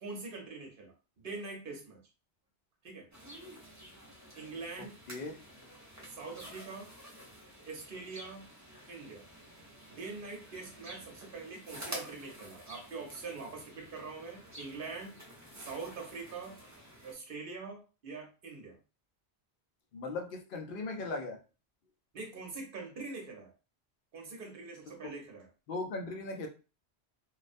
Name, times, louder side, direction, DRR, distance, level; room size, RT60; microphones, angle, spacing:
voice 1, 0.0-2.0 2.8-3.1 4.3-5.0 6.0-6.9 7.7-8.5 8.9-9.3 9.9-15.2 15.6-16.6 17.0-18.8 22.1-23.5 24.1-25.5, right 4 dB, 60° right, 1 dB, 0.9 m, -44 dB
sound 1, 3.1-17.1, right 1 dB, 25° right, 0.4 m, -50 dB
voice 2, 5.1-5.4 19.9-21.4 25.7-26.5, left 3 dB, 60° left, 3 dB, 0.7 m, -38 dB
2.3 x 2.1 x 2.5 m, 0.32 s
omnidirectional pair, 1.1 m